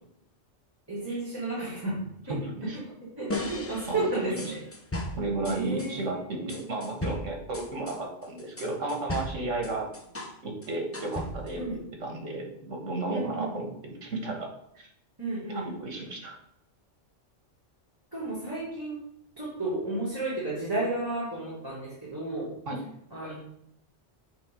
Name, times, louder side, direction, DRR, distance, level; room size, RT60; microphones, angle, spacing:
voice 1, 0.9-2.4 3.2-4.6 5.4-6.0 6.3-6.5 11.6-11.8 13.1-13.5 15.2-15.7 18.1-19.0 19.4-22.5 23.1-23.4, right 2 dB, 20° right, -10 dB, 2.5 m, -32 dB
voice 2, 2.4-2.8 3.9-4.4 5.2-9.9 10.4-14.5 14.8-14.9 15.5-16.4 22.7-22.8, right 2 dB, 90° right, 1 dB, 1.8 m, -33 dB
sound 1, 3.3-5.9 6.5-10.4 10.6-11.6, left 1 dB, 15° left, 0.6 m, -36 dB
8.2 x 3.9 x 5.2 m, 0.78 s
omnidirectional pair, 1.2 m